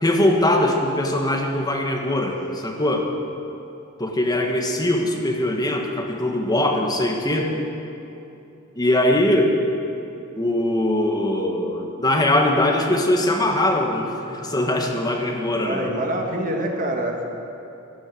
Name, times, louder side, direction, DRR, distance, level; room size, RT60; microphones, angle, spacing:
voice 1, 0.0-3.1 4.0-7.6 8.7-9.5 10.4-15.9 16.5-16.7, left 1 dB, 20° left, 1 dB, 1.5 m, -21 dB
voice 2, 15.6-17.2, right 1 dB, 40° right, 1 dB, 1.8 m, -26 dB
13.0 x 11.5 x 7.7 m, 2.8 s
head